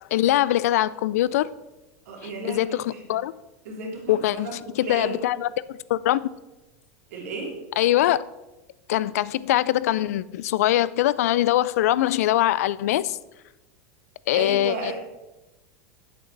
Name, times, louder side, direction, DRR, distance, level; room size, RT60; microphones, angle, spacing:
voice 1, 0.1-1.5 2.2-3.3 4.1-6.3 7.8-8.3 8.9-13.2 14.3-14.9, left 14 dB, 80° left, 0.4 m, -23 dB
voice 2, 2.1-3.1 3.6-5.2 7.1-7.6 14.3-14.9, right 3 dB, 80° right, 2.8 m, -34 dB
7.7 x 7.6 x 4.6 m
supercardioid pair, 135°, 8 cm